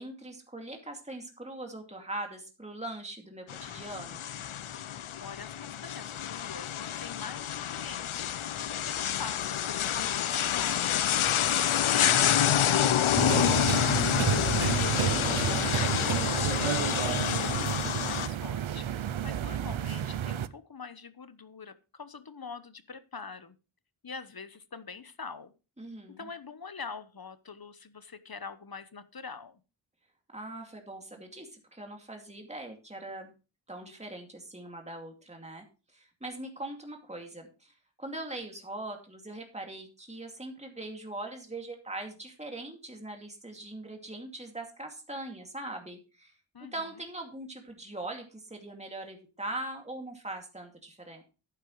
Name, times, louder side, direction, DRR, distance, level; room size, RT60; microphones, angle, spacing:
voice 1, 0.0-4.2 15.2-15.7 25.8-26.3 30.3-33.3 33.7-46.4 46.7-51.2, right 2 dB, 15° right, 3 dB, 2.4 m, -41 dB
sound 1, 3.5-18.3, left 10 dB, 85° left, 0.6 m, -28 dB
voice 2, 5.2-11.0 11.4-15.1 15.8-23.5 24.0-25.5 26.1-29.6 46.5-46.9, left 5 dB, 50° left, 13 dB, 1.0 m, -44 dB
sound 2, 13.2-20.5, right 10 dB, 75° right, 0.7 m, -30 dB
11.0 x 9.8 x 3.1 m, 0.31 s
wide cardioid pair, 50°, 48 cm